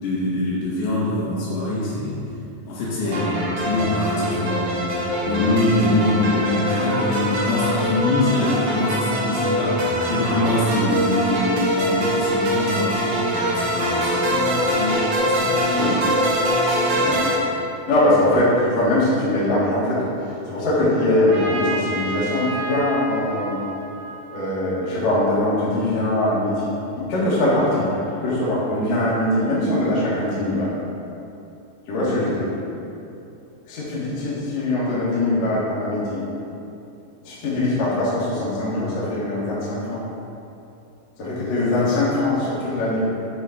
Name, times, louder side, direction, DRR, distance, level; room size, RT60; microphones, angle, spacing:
voice 1, 0.0-2.2 2.7-3.2 3.6-4.7 5.3-16.1 16.9-17.2, left 2 dB, 75° left, -8 dB, 4.2 m, -24 dB
voice 2, 3.0-3.4 5.2-5.6 15.7-16.1 17.0-17.3 17.9-23.6 24.3-26.7 27.0-30.7 31.9-32.5 33.7-36.2 37.2-40.0 41.2-43.0, left 1 dB, 45° left, -9 dB, 2.5 m, -22 dB
sound 1, 3.1-17.4, equal, 65° right, 1.6 m, -23 dB
Trumpet, 21.3-25.0, right 2 dB, 90° right, 3.8 m, -31 dB
9.7 x 5.1 x 4.4 m, 2.8 s
omnidirectional pair, 5.1 m